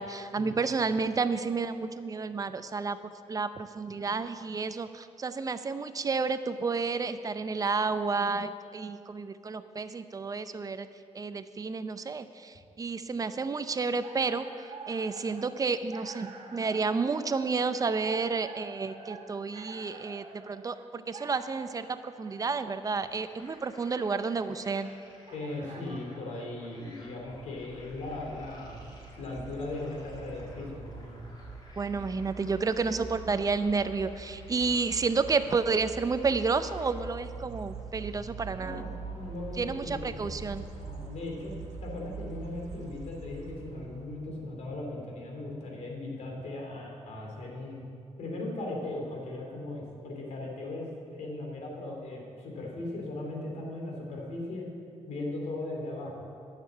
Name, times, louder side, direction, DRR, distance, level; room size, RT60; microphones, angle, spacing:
voice 1, 0.0-3.0 3.3-10.9 11.1-14.4 14.9-24.9 31.8-38.9 39.6-40.6, right 4 dB, 30° right, 11 dB, 0.6 m, -31 dB
sound 1, 13.8-26.2, right 4 dB, 55° right, 1.7 m, -48 dB
sound 2, 22.8-36.9, left 1 dB, 35° left, 2.2 m, -56 dB
voice 2, 25.3-28.9 29.2-31.2 38.5-40.4 40.8-41.5 41.8-47.9 48.2-54.7 55.1-56.2, left 2 dB, 80° left, -1 dB, 2.7 m, -38 dB
sound 3, 27.0-44.6, right 4 dB, 80° right, 1.4 m, -44 dB
10.5 x 6.7 x 7.3 m, 2.4 s
cardioid pair, 90°, 12 cm